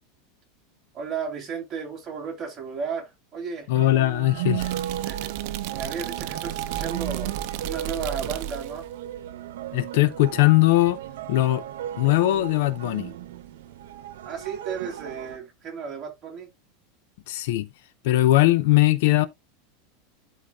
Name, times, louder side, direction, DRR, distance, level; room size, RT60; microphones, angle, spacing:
voice 1, 0.9-3.7 5.0-5.4 5.7-7.3 7.6-8.9 14.2-16.5, right 6 dB, 20° right, 3.0 m, -34 dB
voice 2, 3.7-4.7 9.7-11.0 11.3-11.6 12.0-13.1 17.3-17.7 18.0-19.3, left 17 dB, 65° left, 0.6 m, -20 dB
sound 1, 3.7-15.4, right 12 dB, 85° right, 0.9 m, -35 dB
sound 2, 4.6-8.8, right 11 dB, 50° right, 0.8 m, -34 dB
12.0 x 4.6 x 2.4 m
supercardioid pair, 165°, 0 cm